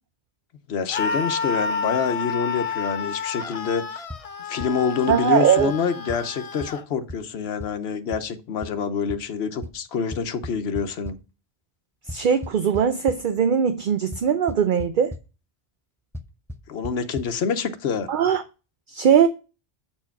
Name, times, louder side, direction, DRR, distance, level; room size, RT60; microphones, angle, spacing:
voice 1, 0.7-4.0 4.5-11.2 16.7-18.1, left 6 dB, 80° left, 1.1 m, -26 dB
Screaming, 0.9-6.8, left 5 dB, 40° left, 0.7 m, -30 dB
sound 1, 4.1-4.2 4.6-4.7 5.1-5.2 5.6-5.7 6.1-6.2 6.6-6.7 7.1-7.2 7.6-7.7 8.1-8.2 8.6-8.7 9.1-9.2 9.6-9.7 10.1-11.1 12.1-13.2 14.1-14.2 14.5-14.9 15.1-15.2 16.1-16.2 16.5-16.6 16.8-16.9 17.2-17.3, left 1 dB, 5° left, 0.3 m, -33 dB
voice 2, 5.1-5.7 12.1-15.1 18.1-18.4 18.9-19.3, right 8 dB, 55° right, 0.7 m, -20 dB
7.8 x 4.5 x 5.8 m
omnidirectional pair, 1.1 m